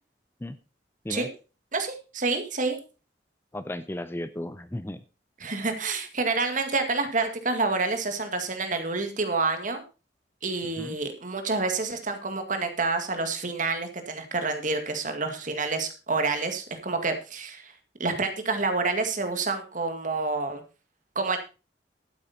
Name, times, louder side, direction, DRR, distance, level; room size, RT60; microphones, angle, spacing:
voice 1, 1.7-2.8 5.4-9.8 10.4-17.7 18.0-20.6 21.2-21.4, right 3 dB, 50° right, 7 dB, 2.0 m, -28 dB
voice 2, 3.5-5.0 10.6-11.0, left 1 dB, 15° left, 13 dB, 0.5 m, -35 dB
12.0 x 8.9 x 4.2 m, 0.32 s
head